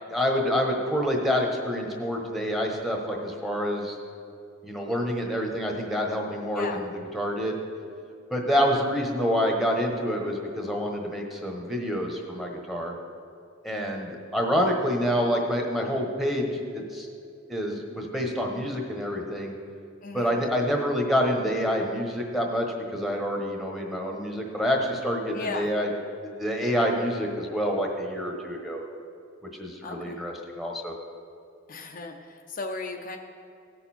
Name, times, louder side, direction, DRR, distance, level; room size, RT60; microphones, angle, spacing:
voice 1, 0.1-3.9 4.6-7.6 8.3-12.9 13.6-16.5 16.7-17.1 17.5-19.5 20.1-22.7 22.9-25.9 26.2-28.8 29.6-30.9, equal, ahead, 0 dB, 1.2 m, -27 dB
voice 2, 20.0-20.4 25.3-25.7 29.8-30.2 31.7-33.2, left 3 dB, 45° left, 2 dB, 0.7 m, -36 dB
17.0 x 6.8 x 4.4 m, 2.4 s
head